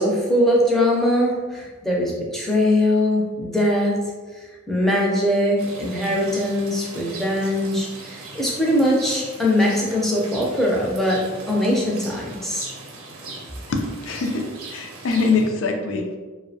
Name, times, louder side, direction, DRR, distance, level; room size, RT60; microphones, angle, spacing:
voice 1, 0.0-4.0 4.4-12.7, left 1 dB, ahead, -3 dB, 0.4 m, -21 dB
Rain, 5.6-15.5, right 2 dB, 90° right, 0.5 m, -39 dB
voice 2, 13.7-16.2, left 3 dB, 70° left, 3 dB, 0.4 m, -23 dB
2.5 x 2.0 x 2.6 m, 1.3 s
head